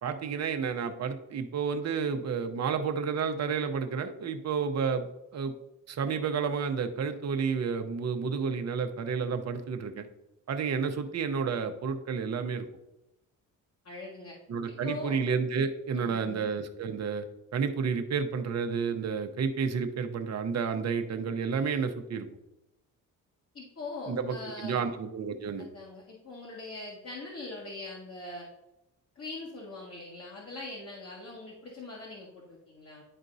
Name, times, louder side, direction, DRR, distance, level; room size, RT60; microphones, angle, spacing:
voice 1, 0.0-5.1 5.3-5.5 5.9-10.1 10.5-12.7 14.5-17.2 17.5-22.3 24.1-25.7, right 6 dB, 50° right, 6 dB, 0.8 m, -31 dB
voice 2, 13.9-14.4 14.7-15.2 15.9-16.4 23.5-24.9 25.6-28.5 29.2-33.0, left 2 dB, 45° left, -3 dB, 1.8 m, -42 dB
11.0 x 4.4 x 2.7 m, 0.91 s
cardioid pair, 95°, 34 cm